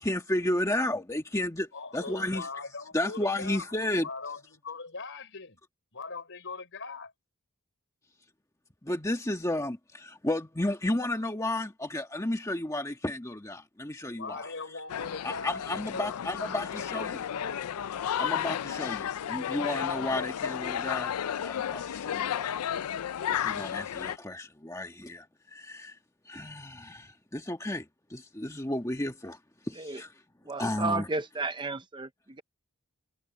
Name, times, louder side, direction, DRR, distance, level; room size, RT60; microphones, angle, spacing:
voice 1, 0.0-2.5 2.9-4.1 8.8-14.5 15.2-17.2 18.2-22.6 23.3-26.0 26.2-29.4 29.6-30.1 30.6-31.1, left 1 dB, 15° left, 1.5 m, -33 dB
voice 2, 1.7-3.7 4.0-5.6 5.9-7.1 14.2-17.7, left 4 dB, 60° left, 5.0 m, -40 dB
sound 1, 14.9-24.2, left 9 dB, 80° left, 0.4 m, -33 dB
voice 3, 30.5-32.4, right 3 dB, 20° right, 0.6 m, -33 dB
head